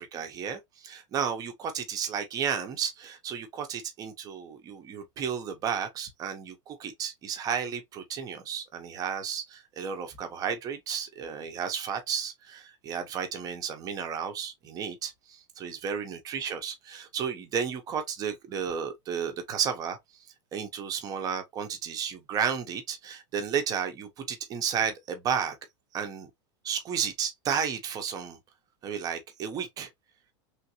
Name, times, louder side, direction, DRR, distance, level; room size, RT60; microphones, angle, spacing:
voice 1, 0.0-20.0 20.5-25.6 25.9-26.3 26.6-28.4 28.8-29.9, right 7 dB, 25° right, 0.7 m, -33 dB
3.2 x 2.5 x 2.9 m
supercardioid pair, 160°, 15 cm